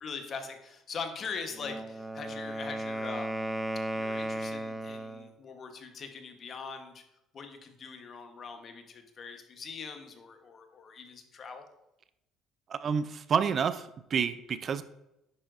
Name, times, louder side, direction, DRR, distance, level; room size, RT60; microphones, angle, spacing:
voice 1, 0.0-3.6 3.9-7.0 7.3-11.6, left 5 dB, 45° left, 6 dB, 1.1 m, -42 dB
Wind instrument woodwind instrument, 1.5-5.3, right 1 dB, 10° right, 0.8 m, -35 dB
voice 2, 12.7-14.8, right 6 dB, 45° right, 13 dB, 0.4 m, -29 dB
9.6 x 5.7 x 2.5 m, 0.88 s
supercardioid pair, 85°, 0 cm